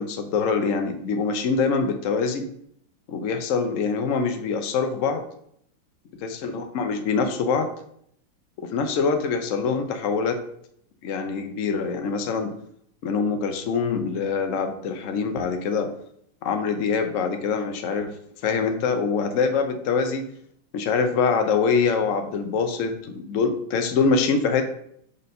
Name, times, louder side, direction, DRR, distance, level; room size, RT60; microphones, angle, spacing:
voice 1, 0.0-2.5 3.1-5.2 6.2-7.7 8.6-10.4 11.0-12.5 13.0-15.9 16.4-18.1 18.4-20.2 20.7-24.7, left 5 dB, 65° left, 6 dB, 0.8 m, -24 dB
5.1 x 4.3 x 5.2 m, 0.69 s
omnidirectional pair, 2.2 m